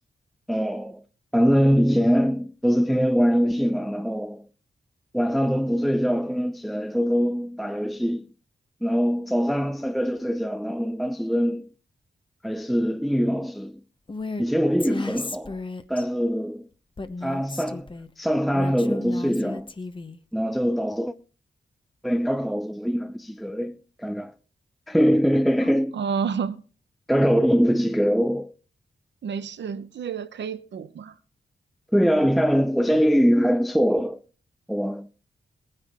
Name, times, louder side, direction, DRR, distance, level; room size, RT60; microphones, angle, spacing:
voice 1, 0.5-1.0 1.3-4.5 5.1-8.3 8.8-11.7 12.4-13.8 14.4-15.6 15.9-16.7 17.2-17.9 18.2-19.7 20.3-21.1 22.0-24.3 24.9-26.0 27.1-28.5 31.9-34.2 34.7-35.1, equal, ahead, 0.5 m, -23 dB
Female speech woman speaking, 14.1-14.4 14.8-16.1 17.0-18.1 18.5-20.2, left 3 dB, 30° left, 1.0 m, -34 dB
voice 2, 25.9-26.6 29.2-31.2, right 6 dB, 85° right, 0.9 m, -30 dB
19.0 x 9.9 x 3.6 m
cardioid pair, 70°, 18 cm